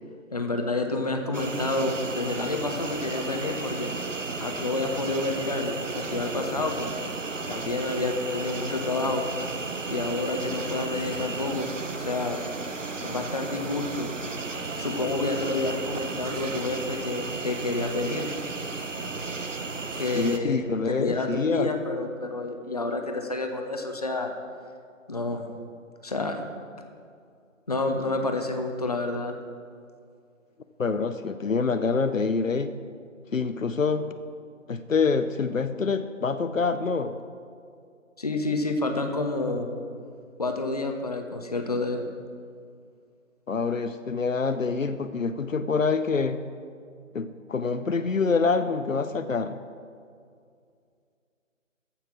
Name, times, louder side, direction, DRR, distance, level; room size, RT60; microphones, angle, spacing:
voice 1, 0.3-3.9 4.4-7.1 7.5-9.2 9.9-11.7 12.0-12.4 13.0-14.1 14.8-18.3 20.0-24.3 25.1-25.5 26.0-26.4 27.7-29.3 38.2-39.7 40.4-42.1, left 2 dB, 30° left, 4 dB, 0.8 m, -29 dB
sound 1, 1.3-20.4, right 3 dB, 65° right, 1.0 m, -34 dB
voice 2, 20.1-21.7 30.8-32.7 33.3-34.1 34.7-37.2 43.5-46.4 47.1-49.6, left 4 dB, 75° left, 10 dB, 0.7 m, -26 dB
14.5 x 5.8 x 6.1 m, 2.3 s
figure-of-eight pair, 155°, 40 cm